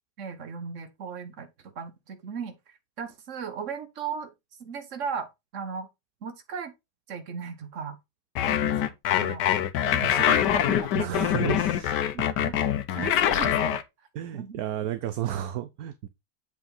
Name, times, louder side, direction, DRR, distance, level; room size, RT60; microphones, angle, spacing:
voice 1, 0.2-2.5 3.0-4.3 4.6-5.3 5.5-5.9 6.2-6.7 7.1-8.0 8.4-9.4 9.9-11.6 12.1-12.6 12.9-13.8 14.3-14.6, right 6 dB, 50° right, 1.4 m, -37 dB
sound 1, 8.4-13.8, left 10 dB, 80° left, 1.3 m, -24 dB
voice 2, 10.0-10.4 11.0-12.5 13.0-13.3 14.1-16.1, right 11 dB, 65° right, 1.1 m, -33 dB
7.8 x 5.0 x 3.9 m
omnidirectional pair, 1.8 m